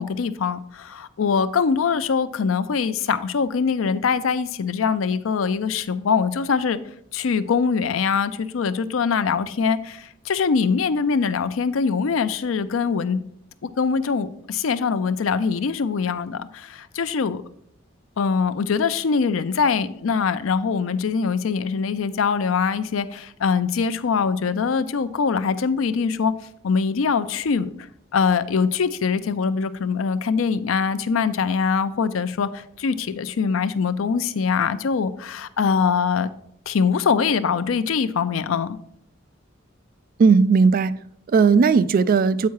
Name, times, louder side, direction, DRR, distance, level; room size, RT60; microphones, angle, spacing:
voice 1, 0.0-6.8 7.1-13.2 13.6-17.4 18.2-26.3 26.6-27.7 28.1-36.3 36.7-38.8, left 5 dB, 85° left, 0.5 m, -23 dB
voice 2, 40.2-42.5, right 5 dB, 45° right, 0.3 m, -17 dB
8.4 x 4.6 x 4.7 m
head